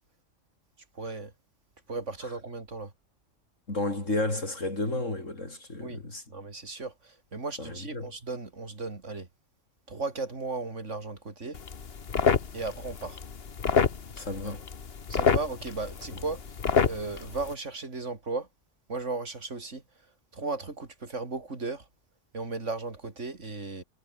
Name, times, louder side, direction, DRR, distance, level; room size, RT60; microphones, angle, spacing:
voice 1, 1.0-1.3 1.9-2.9 5.8-6.0 6.3-9.3 9.9-11.6 12.5-13.2 15.1-16.4 16.8-18.5 18.9-19.8 20.3-21.8 22.3-23.8, right 3 dB, 70° right, 3.6 m, -35 dB
voice 2, 3.7-6.2 7.6-8.1 14.1-14.6 16.1-16.2, left 2 dB, 75° left, 6.5 m, -32 dB
sound 1, 11.5-17.5, left 6 dB, 50° left, 1.5 m, -29 dB
omnidirectional pair, 1.3 m